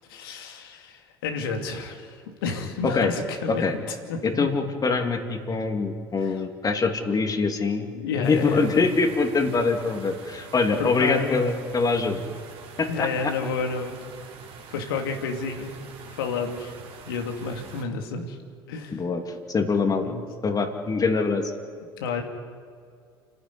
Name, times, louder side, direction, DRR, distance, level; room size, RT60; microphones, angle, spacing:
voice 1, 0.1-3.6 4.1-4.4 6.2-6.4 7.9-8.7 10.8-11.4 12.9-14.0 14.7-15.7 16.1-16.7 17.1-18.4 18.7-19.0 20.0-20.2 22.0-22.2, left 4 dB, 80° left, 3 dB, 2.6 m, -30 dB
voice 2, 4.2-7.9 8.1-12.2 12.8-13.1 18.9-19.2 19.5-20.1 20.4-21.5, left 4 dB, 30° left, 4 dB, 2.8 m, -24 dB
sound 1, 8.2-17.8, right 5 dB, 55° right, 3.5 m, -45 dB
29.5 x 11.0 x 9.7 m, 2.2 s
hypercardioid pair, 70°, 12 cm